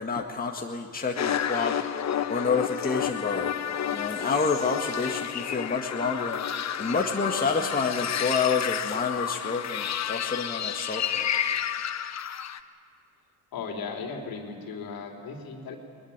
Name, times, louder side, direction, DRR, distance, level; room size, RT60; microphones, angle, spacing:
voice 1, 0.0-1.7 2.3-3.5 3.9-6.4 6.8-11.3, left 5 dB, 20° left, 1 dB, 2.0 m, -28 dB
sound 1, 1.2-12.6, left 9 dB, 40° left, 1.2 m, -30 dB
voice 2, 13.5-15.8, left 5 dB, 55° left, 2 dB, 3.8 m, -36 dB
21.5 x 20.5 x 8.9 m, 2.3 s
hypercardioid pair, 60°, 42 cm